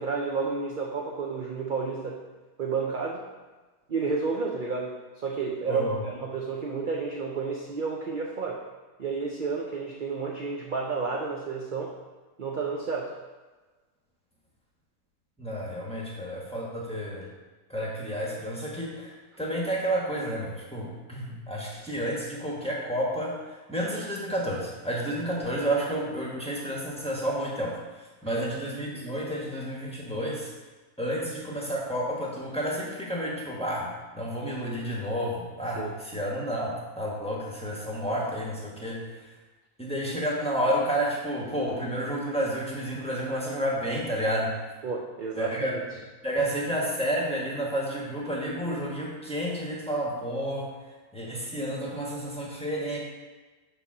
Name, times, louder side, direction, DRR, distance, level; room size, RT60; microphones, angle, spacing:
voice 1, 0.0-2.2 2.6-3.2 3.9-8.6 9.0-11.9 12.4-13.1 28.2-28.4 28.9-29.0 35.8-35.9 44.8-45.8, right 4 dB, 55° right, -2 dB, 0.5 m, -31 dB
voice 2, 5.7-6.0 15.4-17.3 17.7-30.5 31.0-39.2 39.8-44.6 45.4-45.8 46.2-50.7 51.1-53.0, equal, 5° left, -4 dB, 1.1 m, -30 dB
6.9 x 3.4 x 5.9 m, 1.3 s
omnidirectional pair, 1.6 m